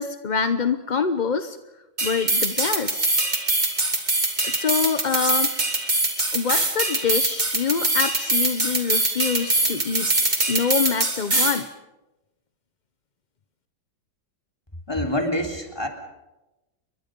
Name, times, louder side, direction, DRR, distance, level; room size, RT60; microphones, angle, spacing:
voice 1, 0.0-1.6 2.0-3.1 4.4-5.5 6.3-10.1 10.5-11.7, left 6 dB, 40° left, 10 dB, 0.6 m, -25 dB
sound 1, 2.0-11.6, right 2 dB, 25° right, 2.8 m, -23 dB
voice 2, 14.9-15.9, left 1 dB, 15° left, 3 dB, 3.4 m, -26 dB
29.5 x 23.0 x 5.3 m, 1.0 s
omnidirectional pair, 1.9 m